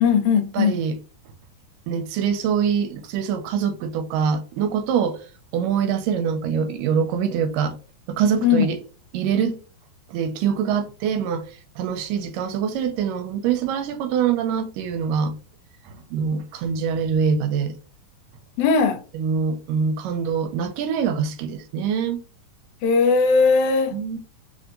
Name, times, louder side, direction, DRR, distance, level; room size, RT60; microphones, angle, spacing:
voice 1, 0.0-0.8 8.4-8.7 18.6-19.0 22.8-23.9, left 5 dB, 80° left, 1.8 m, -18 dB
voice 2, 0.5-1.0 1.9-5.2 5.5-7.7 8.1-8.8 9.1-9.6 10.1-11.4 11.8-15.3 16.1-17.7 19.1-22.2 23.9-24.2, right 7 dB, 90° right, 2.2 m, -24 dB
4.4 x 3.9 x 2.5 m
omnidirectional pair, 3.8 m